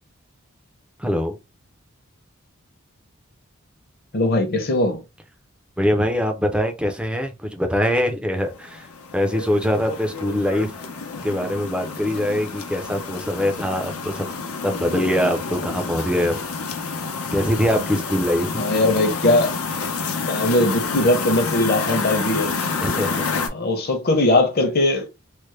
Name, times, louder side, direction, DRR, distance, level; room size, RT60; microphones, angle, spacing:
voice 1, 1.0-1.4 5.8-8.9 9.1-10.7 11.2-14.3 14.6-16.4 17.3-18.5 22.8-23.4, equal, 5° right, 0.5 m, -23 dB
voice 2, 4.1-5.0 18.6-19.5 20.3-22.5 23.5-25.1, left 2 dB, 45° left, 0.8 m, -20 dB
sound 1, 8.4-23.5, left 4 dB, 85° left, 0.7 m, -29 dB
3.3 x 2.1 x 3.2 m
head